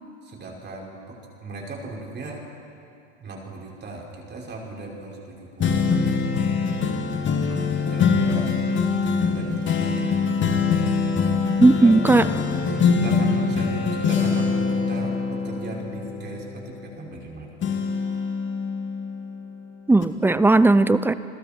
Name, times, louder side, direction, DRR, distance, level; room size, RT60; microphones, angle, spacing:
voice 1, 0.2-2.4 3.2-5.8 7.1-10.2 11.8-17.6, right 2 dB, 30° right, -1 dB, 5.5 m, -37 dB
sound 1, 5.6-17.2 17.6-19.5 20.0-20.1, left 5 dB, 30° left, 2.1 m, -23 dB
voice 2, 11.6-12.2 19.9-21.1, right 2 dB, 5° right, 15 dB, 0.6 m, -16 dB
30.0 x 21.5 x 4.5 m, 2.5 s
hypercardioid pair, 85°, 36 cm